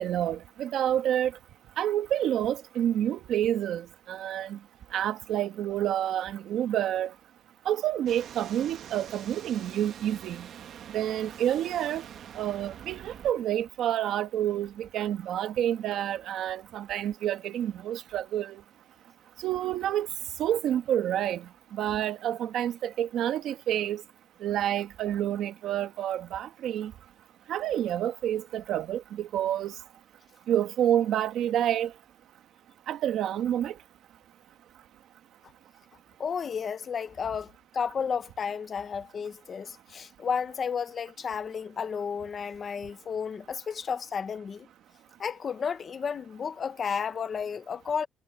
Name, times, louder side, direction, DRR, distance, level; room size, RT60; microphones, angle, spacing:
voice 1, 0.0-1.3 1.8-4.6 4.9-7.1 7.6-10.5 10.9-12.0 12.4-18.6 19.4-20.1 20.4-24.0 24.4-26.9 27.5-29.7 30.5-31.9 32.9-33.7, right 11 dB, 85° right, 1.5 m, -28 dB
sound 1, 8.1-13.3, right 9 dB, 65° right, 1.3 m, -45 dB
voice 2, 36.2-44.7 45.2-48.1, left 6 dB, 35° left, 0.9 m, -32 dB
cardioid pair, 175°, 0 cm